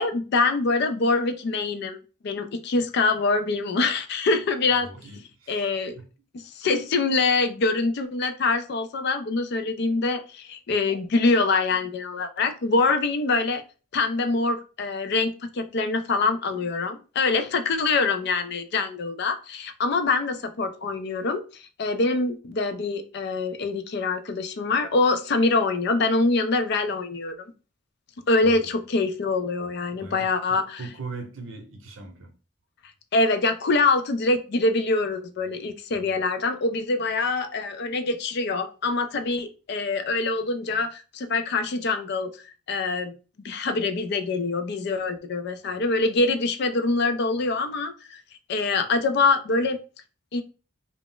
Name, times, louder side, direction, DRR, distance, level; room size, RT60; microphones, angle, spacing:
voice 1, 0.0-2.0 2.2-4.9 5.5-6.0 6.3-13.6 13.9-27.5 28.3-30.8 33.1-42.3 42.7-43.1 43.4-48.2 48.5-49.8 50.3-50.4, left 3 dB, 50° left, 0.4 m, -24 dB
voice 2, 4.8-6.0 28.4-28.8 29.9-32.3, right 3 dB, 65° right, 0.7 m, -40 dB
2.3 x 2.0 x 3.7 m
head